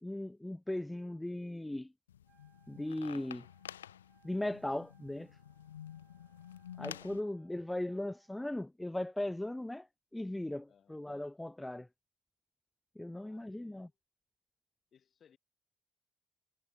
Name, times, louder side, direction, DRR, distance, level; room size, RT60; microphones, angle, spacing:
voice 1, 0.0-1.9 2.7-3.4 4.2-5.3 6.8-9.9 10.1-11.9 13.0-13.9, left 1 dB, 10° left, 0.6 m, -38 dB
sound 1, 2.1-7.2, left 10 dB, 90° left, 1.4 m, -50 dB
Wind instrument woodwind instrument, 2.2-8.4, right 9 dB, 55° right, 4.0 m, -71 dB
voice 2, 7.2-7.6 10.6-11.1 13.1-14.0 14.9-15.4, left 8 dB, 50° left, 5.1 m, -67 dB
hypercardioid pair, 50°, 0 cm